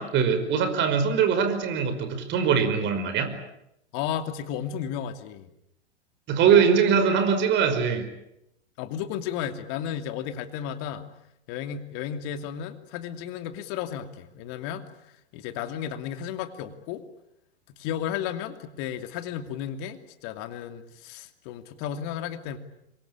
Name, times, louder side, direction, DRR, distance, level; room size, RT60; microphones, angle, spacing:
voice 1, 0.0-3.3 6.3-8.1, right 6 dB, 35° right, 9 dB, 5.3 m, -22 dB
voice 2, 3.9-5.5 8.8-11.1 11.5-14.9 15.3-17.0 17.7-22.6, left 9 dB, 40° left, 9 dB, 2.7 m, -33 dB
27.0 x 23.5 x 8.6 m, 0.79 s
figure-of-eight pair, 105°, 34 cm